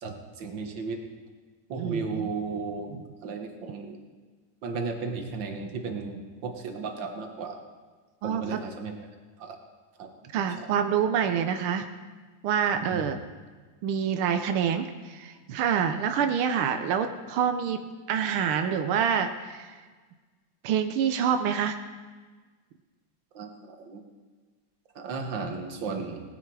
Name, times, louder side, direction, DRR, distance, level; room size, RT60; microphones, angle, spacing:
voice 1, 0.0-1.0 1.7-2.9 3.2-4.0 4.6-7.6 8.2-8.9 9.4-9.6 10.0-10.1 10.6-10.7 12.7-13.1 23.3-24.0 24.9-26.2, right 4 dB, 50° right, 3 dB, 1.7 m, -34 dB
voice 2, 1.8-2.3 8.2-8.6 10.3-11.9 12.4-13.2 13.8-17.8 18.1-19.7 20.6-21.8, right 8 dB, 90° right, 7 dB, 1.1 m, -26 dB
18.5 x 9.8 x 4.8 m, 1.4 s
omnidirectional pair, 3.4 m